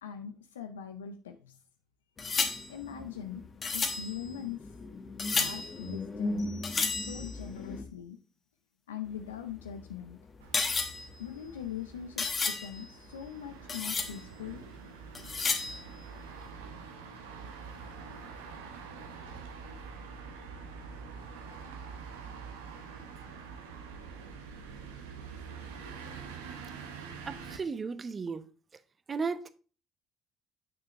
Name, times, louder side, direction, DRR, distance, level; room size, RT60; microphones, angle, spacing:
voice 1, 0.0-1.6 2.7-3.4 3.7-4.7 5.4-6.5 7.0-8.2 8.9-10.2 11.2-14.6, left 9 dB, 85° left, 0.4 m, -41 dB
sound 1, 2.2-7.8 9.1-13.3 13.6-14.3 15.1-16.1, left 4 dB, 35° left, 1.1 m, -34 dB
sound 2, 6.4-7.9, left 4 dB, 60° left, 1.8 m, -53 dB
sound 3, 10.4-27.6, right 5 dB, 80° right, 0.8 m, -46 dB
voice 2, 27.3-28.4 29.1-29.5, right 5 dB, 35° right, 0.6 m, -34 dB
6.7 x 6.3 x 2.9 m
hypercardioid pair, 55°, 0 cm